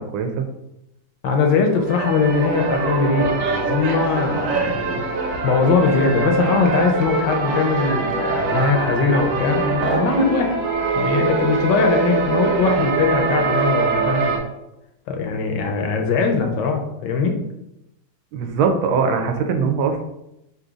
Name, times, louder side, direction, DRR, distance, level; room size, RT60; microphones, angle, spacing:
voice 1, 0.1-0.5 18.3-20.0, right 5 dB, 90° right, 6 dB, 1.4 m, -21 dB
voice 2, 1.2-5.0 5.4-10.6 11.0-14.4 15.1-17.4, left 4 dB, 70° left, 3 dB, 1.2 m, -20 dB
sound 1, 1.6-14.4, right 4 dB, 60° right, 0.8 m, -23 dB
3.9 x 2.7 x 4.8 m, 0.86 s
omnidirectional pair, 2.2 m